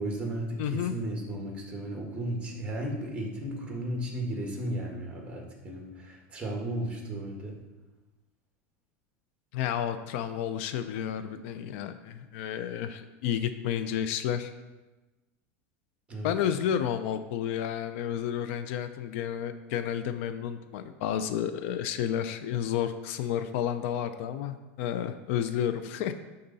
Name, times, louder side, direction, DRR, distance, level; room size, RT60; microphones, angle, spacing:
voice 1, 0.0-7.6 16.1-16.3, right 1 dB, 15° right, 0 dB, 1.8 m, -34 dB
voice 2, 0.6-0.9 9.5-14.5 16.2-26.1, left 9 dB, 70° left, 10 dB, 0.5 m, -31 dB
11.0 x 3.9 x 4.1 m, 1.1 s
supercardioid pair, 130°, 7 cm